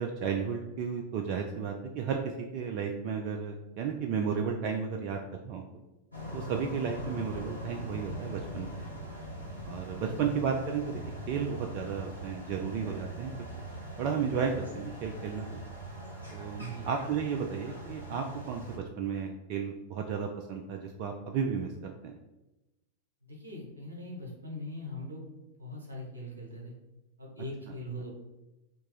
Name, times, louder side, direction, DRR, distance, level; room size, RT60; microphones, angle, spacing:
voice 1, 0.0-5.7 6.3-8.8 9.6-11.0 11.3-13.3 14.0-15.5 16.3-22.1, right 6 dB, 45° right, 3 dB, 0.4 m, -33 dB
sound 1, 6.1-18.8, equal, 90° left, 0.9 m, -41 dB
voice 2, 10.0-10.3 16.5-16.9 23.2-25.3 25.6-26.7 27.2-28.1, equal, 75° right, -1 dB, 1.1 m, -41 dB
3.5 x 2.8 x 4.6 m, 1.0 s
figure-of-eight pair, 90°, 0 cm